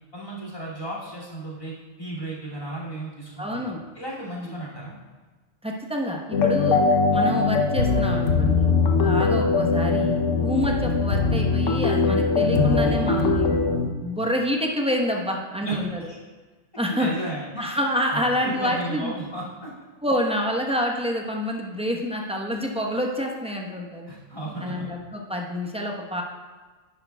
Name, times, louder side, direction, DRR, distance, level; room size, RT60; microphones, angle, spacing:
voice 1, 0.1-5.0 9.1-9.3 15.6-15.8 16.1-16.2 16.9-17.8 18.1-19.7 24.1-24.9, right 1 dB, 25° left, -4 dB, 2.5 m, -34 dB
voice 2, 3.4-3.8 4.4-4.5 5.6-6.8 7.1-8.7 9.0-16.0 16.8-17.1 17.6-19.1 20.0-24.1 24.6-26.2, equal, 5° right, -1 dB, 0.9 m, -27 dB
sound 1, 6.3-13.9, left 4 dB, 80° left, 1.1 m, -21 dB
10.5 x 10.5 x 2.3 m, 1.4 s
omnidirectional pair, 1.3 m